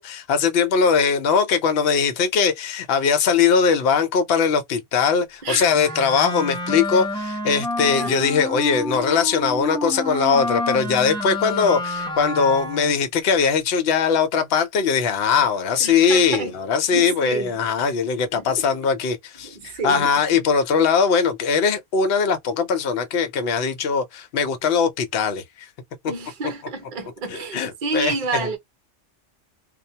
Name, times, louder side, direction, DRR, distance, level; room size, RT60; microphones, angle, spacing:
voice 1, 0.0-25.7 27.3-28.5, left 6 dB, 60° left, 0.8 m, -20 dB
voice 2, 5.4-5.7 7.8-8.1 15.8-16.5 16.9-17.5 18.3-18.7 19.5-20.1 26.1-28.6, right 3 dB, 50° right, 0.8 m, -29 dB
Wind instrument woodwind instrument, 5.7-13.0, left 1 dB, 5° left, 0.5 m, -29 dB
2.3 x 2.1 x 2.7 m
omnidirectional pair, 1.2 m